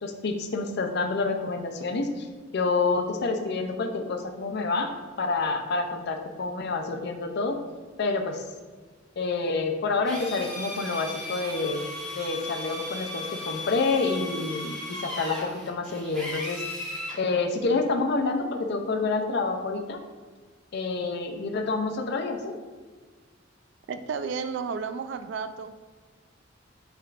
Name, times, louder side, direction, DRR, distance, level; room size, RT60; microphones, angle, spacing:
voice 1, 0.0-2.3 2.5-4.9 5.2-7.6 8.0-8.4 9.2-11.9 12.1-16.6 17.2-20.0 20.7-22.5, left 3 dB, 60° left, 5 dB, 0.5 m, -28 dB
Drill, 10.0-17.2, left 1 dB, 5° left, 1.2 m, -36 dB
voice 2, 23.9-25.7, right 5 dB, 65° right, 9 dB, 0.3 m, -32 dB
5.5 x 3.6 x 2.4 m, 1.4 s
head